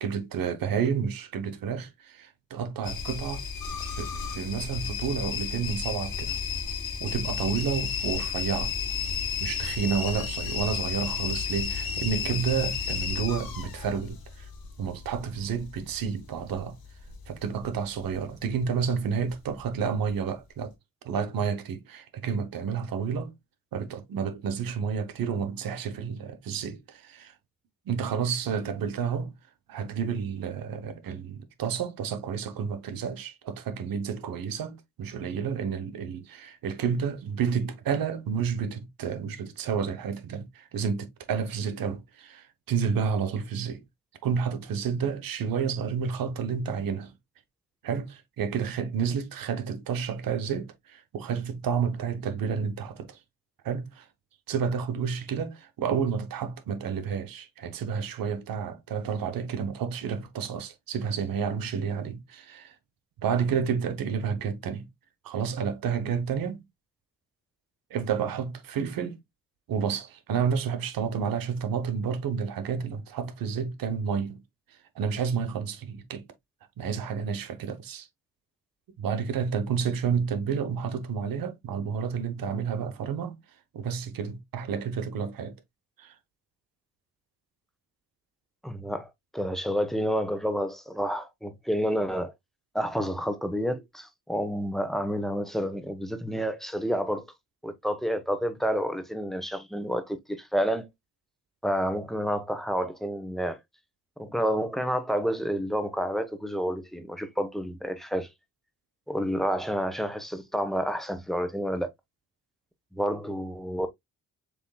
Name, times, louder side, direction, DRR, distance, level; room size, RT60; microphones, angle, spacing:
voice 1, 0.0-3.4 3.8-6.3 7.0-8.7 9.4-14.5 14.8-16.8 17.3-20.7 21.0-23.4 23.7-27.3 27.9-29.4 29.7-43.8 44.2-47.1 47.8-53.2 53.6-54.1 54.5-62.7 63.2-64.9 65.2-66.6 67.9-69.2 69.7-74.4 74.9-76.3 76.8-78.1 79.0-83.4 83.7-85.6 86.0-86.1, right 6 dB, 80° right, 1.0 m, -30 dB
sound 1, 2.8-17.7 18.0-18.6 19.2-19.6 20.1-20.2, left 6 dB, 85° left, 1.5 m, -33 dB
voice 2, 88.6-92.3 92.7-97.3 97.6-100.9 101.6-103.6 104.2-108.3 109.1-111.9 112.9-113.9, equal, ahead, 1.1 m, -29 dB
6.9 x 3.1 x 2.2 m
cardioid pair, 60°, 34 cm